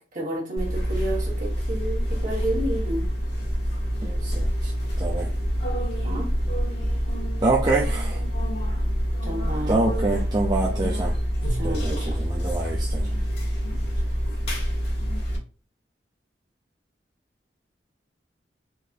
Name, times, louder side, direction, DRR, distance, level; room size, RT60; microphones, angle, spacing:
voice 1, 0.1-3.1 6.0-6.3 9.2-9.8 11.5-12.2, right 1 dB, 45° right, -3 dB, 1.4 m, -31 dB
sound 1, 0.6-15.4, equal, 75° left, 1.4 m, -26 dB
voice 2, 4.0-4.7 5.0-5.3 7.4-8.2 9.7-11.1 11.6-13.1, right 2 dB, 25° right, -3 dB, 0.4 m, -26 dB
3.8 x 2.6 x 2.6 m, 0.38 s
head